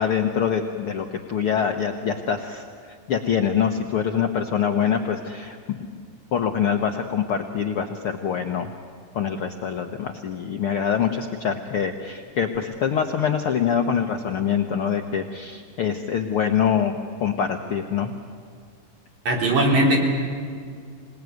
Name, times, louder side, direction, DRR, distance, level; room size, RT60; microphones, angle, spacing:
voice 1, 0.0-5.9 6.3-8.7 9.1-18.1, left 7 dB, 85° left, 5 dB, 1.2 m, -25 dB
voice 2, 19.2-20.0, right 1 dB, 50° right, 0 dB, 4.8 m, -19 dB
27.5 x 19.0 x 9.4 m, 2.1 s
omnidirectional pair, 4.0 m